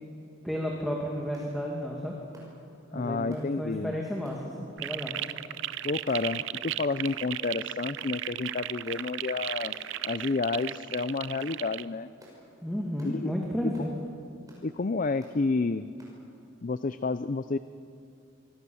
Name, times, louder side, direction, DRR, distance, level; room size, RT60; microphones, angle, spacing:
voice 1, 0.4-2.1 2.9-5.1 12.6-13.9, equal, ahead, -2 dB, 2.3 m, -32 dB
sound 1, 1.3-1.5 2.3-2.6 3.3-3.5 4.2-4.4 5.2-5.4 6.1-6.3 7.0-7.2 8.0-8.2 8.8-9.0 9.7-9.9 10.6-10.7 11.4-11.6 12.2-12.4 13.0-13.2 13.7-13.9 14.5-14.7 15.2-15.4 16.0-16.2, right 1 dB, 15° right, 6.4 m, -55 dB
voice 2, 2.9-3.9 5.8-9.8 10.0-12.1 13.0-13.3 14.6-15.9 16.6-17.6, left 3 dB, 40° left, 13 dB, 0.5 m, -30 dB
sound 2, 4.8-11.8, right 12 dB, 65° right, 0.6 m, -35 dB
26.0 x 22.0 x 7.1 m, 2.5 s
head